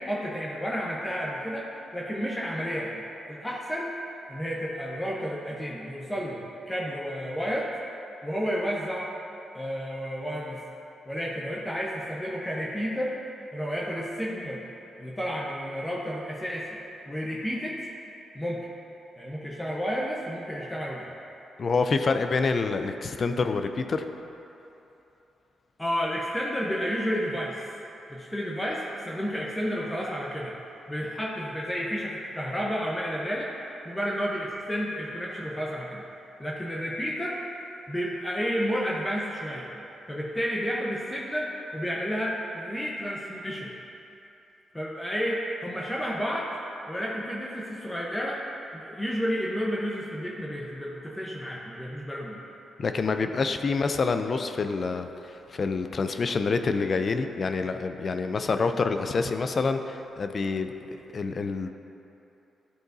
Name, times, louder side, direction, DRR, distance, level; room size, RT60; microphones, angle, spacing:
voice 1, 0.0-3.0 3.3-3.9 4.3-6.4 6.7-7.7 8.2-9.1 9.5-10.6 11.1-13.1 13.5-14.6 15.0-16.7 17.1-17.8 18.3-18.7 19.2-21.1 25.8-27.6 28.1-30.5 30.9-33.5 33.8-36.0 36.4-37.4 37.9-39.7 40.1-43.7 44.7-46.5 46.9-48.4 48.7-52.5, equal, 15° left, -4 dB, 0.8 m, -31 dB
voice 2, 21.6-24.0 52.8-60.7 61.1-61.7, left 4 dB, 50° left, 8 dB, 0.4 m, -27 dB
11.0 x 3.9 x 2.6 m, 3.0 s
cardioid pair, 65°, 0 cm